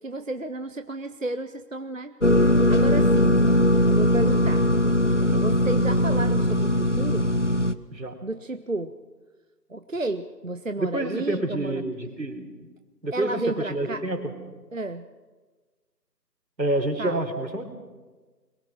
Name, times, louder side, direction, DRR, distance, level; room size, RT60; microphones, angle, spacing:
voice 1, 0.0-2.1 2.7-3.4 3.9-4.7 5.3-7.3 8.2-8.9 9.7-11.8 13.1-14.0 14.7-15.1 17.0-17.3, right 2 dB, 50° right, 10 dB, 0.7 m, -32 dB
sound 1, 2.2-7.7, left 1 dB, 45° left, 0.7 m, -20 dB
voice 2, 10.8-12.5 13.0-14.3 16.6-17.6, right 1 dB, 80° right, 6 dB, 3.6 m, -28 dB
22.0 x 20.0 x 6.0 m, 1.3 s
figure-of-eight pair, 175°, 50 cm